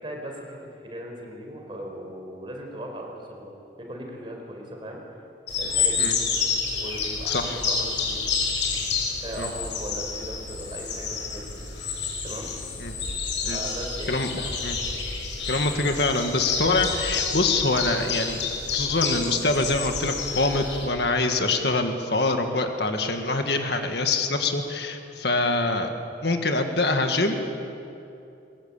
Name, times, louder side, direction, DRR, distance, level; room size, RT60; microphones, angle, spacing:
voice 1, 0.0-5.2 5.6-6.1 6.7-8.2 9.2-11.6 12.2-12.5 13.5-14.5, equal, 25° right, 1 dB, 4.8 m, -38 dB
sound 1, 5.5-20.9, left 5 dB, 80° left, 5.9 m, -29 dB
voice 2, 7.3-7.6 9.4-9.5 12.8-12.9 13.4-13.6 14.1-14.3 14.6-14.8 15.5-18.4 18.7-25.9 26.2-27.5, left 2 dB, 60° left, 5 dB, 1.9 m, -25 dB
22.5 x 21.5 x 8.9 m, 2.7 s
head